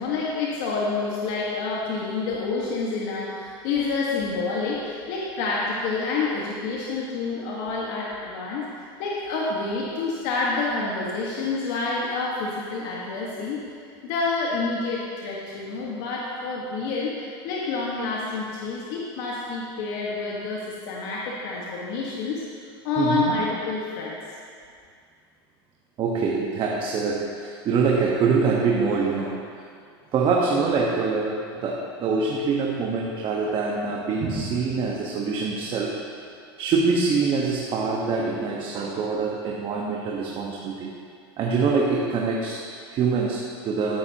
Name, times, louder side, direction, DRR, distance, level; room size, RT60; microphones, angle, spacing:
voice 1, 0.0-13.6 14.0-22.4 22.8-24.1, left 3 dB, 60° left, -4 dB, 1.7 m, -28 dB
voice 2, 23.0-23.3 26.0-29.4 30.1-36.3 36.6-40.9 41.4-44.0, right 4 dB, 40° right, -2 dB, 1.4 m, -25 dB
16.0 x 9.3 x 3.0 m, 2.2 s
hypercardioid pair, 110°, 14 cm